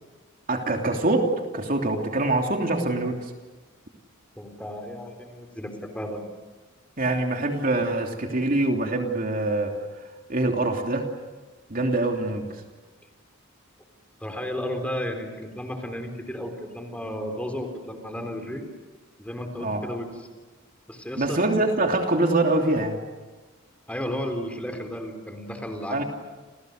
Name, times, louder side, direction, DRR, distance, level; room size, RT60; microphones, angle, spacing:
voice 1, 0.5-3.3 7.0-9.7 10.3-11.1 11.7-12.6 19.6-19.8 21.2-23.0 25.9-26.0, right 2 dB, 45° right, 3 dB, 3.0 m, -24 dB
voice 2, 4.4-6.2 14.2-18.6 19.2-20.3 20.9-21.4 23.9-26.0, equal, 5° left, 5 dB, 3.9 m, -33 dB
30.0 x 29.5 x 6.6 m, 1.3 s
head